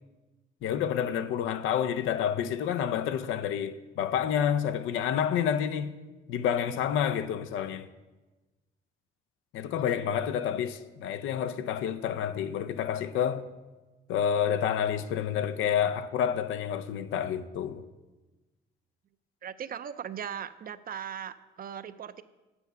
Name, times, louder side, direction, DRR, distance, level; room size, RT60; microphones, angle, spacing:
voice 1, 0.6-5.9 6.3-7.9 9.5-13.5 14.1-17.8, left 9 dB, 90° left, 0.6 m, -29 dB
voice 2, 19.4-22.2, right 8 dB, 45° right, 0.5 m, -38 dB
8.2 x 7.1 x 5.5 m
cardioid pair, 90°, 20 cm